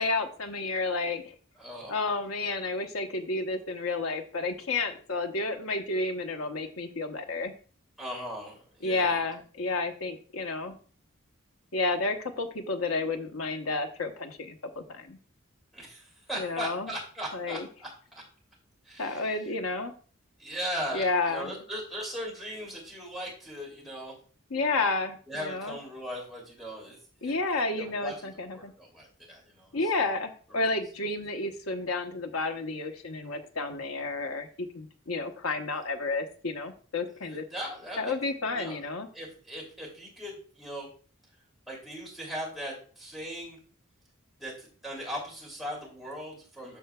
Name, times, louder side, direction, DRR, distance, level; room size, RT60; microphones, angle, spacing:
voice 1, 0.0-1.4 1.9-7.5 8.8-10.8 11.7-15.2 16.4-16.9 17.3-17.7 19.0-19.9 20.9-21.5 24.5-25.8 27.2-28.7 29.7-37.4 38.0-39.1, left 3 dB, 85° left, 6 dB, 1.0 m, -31 dB
voice 2, 1.6-2.0 8.0-9.2 15.7-18.2 18.8-19.4 20.4-24.1 25.3-27.3 27.8-29.9 37.2-38.1 38.5-38.8 39.1-40.9 41.7-43.6 44.4-46.8, equal, ahead, -4 dB, 2.8 m, -39 dB
13.5 x 4.6 x 2.3 m, 0.42 s
head